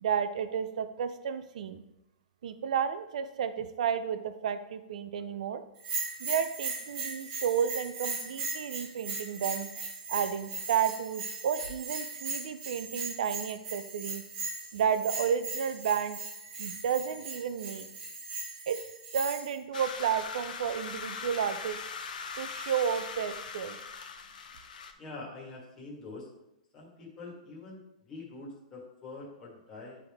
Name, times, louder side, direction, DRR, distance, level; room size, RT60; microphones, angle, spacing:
voice 1, 0.0-1.8 2.4-5.6 6.2-9.7 10.1-14.2 14.7-16.2 16.6-17.9 18.7-18.8 19.1-21.8 22.4-23.8, right 8 dB, 60° right, 10 dB, 0.4 m, -32 dB
Bell, 5.8-19.5, right 4 dB, 30° right, 1.1 m, -38 dB
sound 1, 19.7-24.9, left 5 dB, 90° left, 0.7 m, -40 dB
voice 2, 25.0-26.3 26.7-30.0, left 3 dB, 15° left, -4 dB, 1.5 m, -45 dB
9.6 x 3.5 x 3.5 m, 0.89 s
hypercardioid pair, 175°, 4 cm